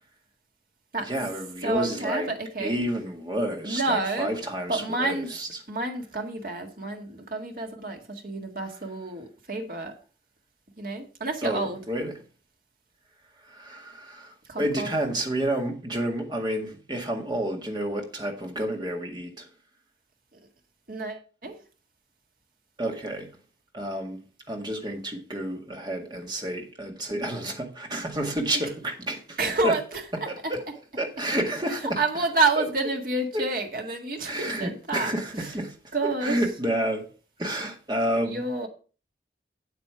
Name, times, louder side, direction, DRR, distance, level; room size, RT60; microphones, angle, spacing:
voice 1, 1.0-2.3 2.6-5.5 11.4-12.1 13.5-19.5 22.8-23.3 23.7-24.2 24.5-29.4 29.6-29.7 30.1-30.6 30.9-32.0 32.6-32.7 33.3-33.4 34.3-35.7 36.2-37.1 37.4-38.4, right 1 dB, 25° right, 1.9 m, -30 dB
voice 2, 1.6-2.7 3.6-4.3 4.7-5.3 5.7-9.9 10.8-11.8 14.5-14.9 20.9-21.5 29.4-30.5 31.7-35.1 35.4-35.5 35.9-36.4 38.2-38.7, right 3 dB, 50° right, 1.8 m, -29 dB
8.5 x 8.2 x 4.8 m
head